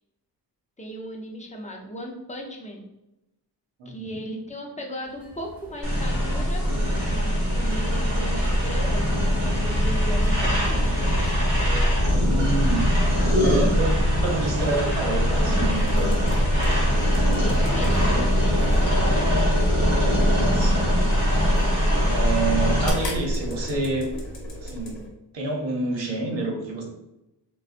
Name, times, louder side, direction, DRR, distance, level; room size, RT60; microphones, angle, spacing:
voice 1, 0.8-2.9 3.9-6.7 7.1-10.9 17.3-19.0, equal, 15° left, 1 dB, 0.5 m, -36 dB
voice 2, 3.8-4.2 12.1-12.9 13.4-16.3 20.2-21.1 22.1-24.1 24.6-25.0 25.3-26.9, right 2 dB, 80° right, 0 dB, 0.9 m, -28 dB
sound 1, 5.2-24.3, equal, 5° right, 1.2 m, -33 dB
sound 2, 5.8-22.9, equal, 40° right, 1.4 m, -22 dB
sound 3, 15.8-25.1, equal, 90° left, 0.9 m, -34 dB
3.9 x 2.2 x 2.5 m, 0.90 s
wide cardioid pair, 110°, 43 cm